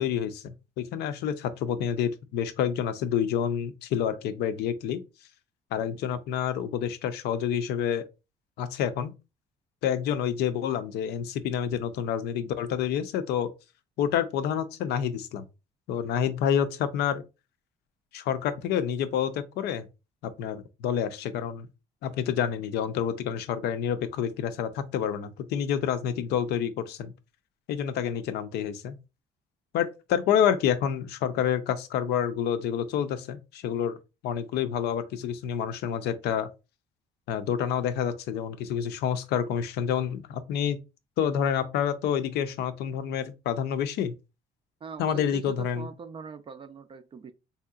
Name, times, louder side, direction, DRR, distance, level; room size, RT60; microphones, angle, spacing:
voice 1, 0.0-5.0 5.7-8.0 8.6-9.1 9.8-13.5 14.0-15.5 15.9-17.2 18.1-19.9 20.2-21.7 22.0-27.1 27.7-28.9 29.7-34.0 34.2-36.5 37.3-40.8 41.2-44.1 45.0-45.9, left 8 dB, 80° left, 0.5 m, -28 dB
voice 2, 44.8-47.3, right 5 dB, 30° right, 0.4 m, -42 dB
3.4 x 2.7 x 2.3 m
cardioid pair, 110°, 17 cm